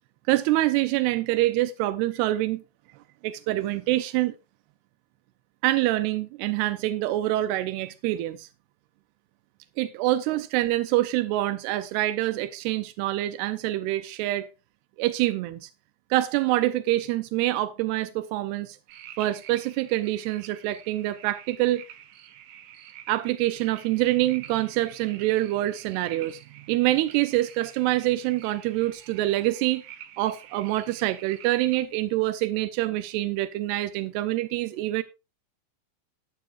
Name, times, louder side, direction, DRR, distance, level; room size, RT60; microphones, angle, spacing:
voice 1, 0.3-2.6 3.2-4.3 5.6-8.5 9.8-14.5 15.0-15.7 16.1-18.8 19.2-21.8 23.1-26.4 26.7-29.8 30.2-35.0, right 16 dB, 90° right, 2.3 m, -25 dB
sound 1, 18.9-31.8, right 11 dB, 65° right, 2.6 m, -48 dB
13.5 x 11.5 x 2.5 m
omnidirectional pair, 5.4 m